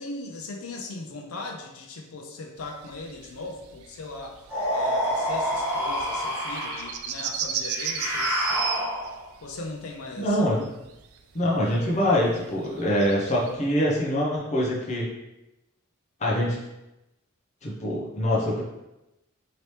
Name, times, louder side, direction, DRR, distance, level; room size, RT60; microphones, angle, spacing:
voice 1, 0.0-4.4 4.7-8.7 9.4-10.5, left 2 dB, 85° left, 3 dB, 0.5 m, -39 dB
sound 1, 2.6-9.2 9.4-9.9 10.3-11.6 11.8-13.5, right 7 dB, 85° right, 0.3 m, -34 dB
sound 2, 4.5-7.0 7.6-9.3, equal, 10° right, 1.0 m, -27 dB
voice 2, 10.2-10.7 11.3-15.1 16.2-16.6 17.6-18.6, equal, 35° left, -4 dB, 0.6 m, -24 dB
2.9 x 2.8 x 3.2 m, 0.95 s
head